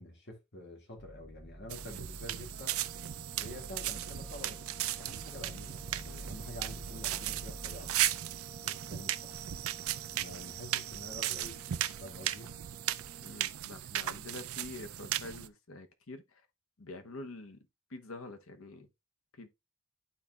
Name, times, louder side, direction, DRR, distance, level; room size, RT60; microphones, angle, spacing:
voice 1, 0.0-2.8 3.4-4.6 5.0-7.9 8.6-9.3 10.1-12.5, left 1 dB, 55° left, 2.0 m, -48 dB
sound 1, 1.0-8.1, equal, 10° right, 3.2 m, -49 dB
sound 2, 1.7-15.5, right 13 dB, 85° right, 0.5 m, -36 dB
sound 3, 2.5-13.6, right 1 dB, 35° right, 1.6 m, -56 dB
voice 2, 13.2-16.4 16.8-17.6 17.9-18.9 19.4-19.5, left 2 dB, 80° left, 1.0 m, -46 dB
12.0 x 4.2 x 2.3 m
head